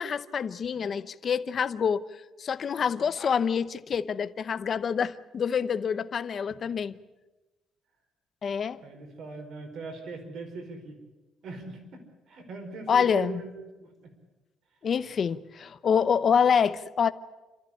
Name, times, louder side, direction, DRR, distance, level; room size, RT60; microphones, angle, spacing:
voice 1, 0.0-2.1 2.4-7.0 8.4-8.8 12.9-13.4 14.8-17.1, left 7 dB, 35° left, 0.8 m, -26 dB
voice 2, 8.8-11.0 11.4-12.0 12.3-13.5 13.8-13.9, right 4 dB, 55° right, 4.9 m, -40 dB
27.5 x 14.0 x 9.9 m
cardioid pair, 165°, 0 cm